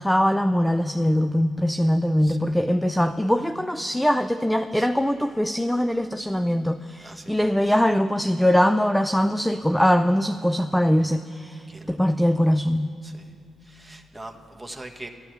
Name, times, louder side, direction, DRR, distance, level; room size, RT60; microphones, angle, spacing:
voice 1, 0.0-12.9, equal, 5° left, 10 dB, 0.5 m, -22 dB
voice 2, 7.0-7.5 11.7-12.0 13.0-13.3 13.6-15.1, right 1 dB, 10° right, 3 dB, 1.5 m, -42 dB
12.0 x 11.5 x 8.0 m, 2.6 s
supercardioid pair, 60°, 0 cm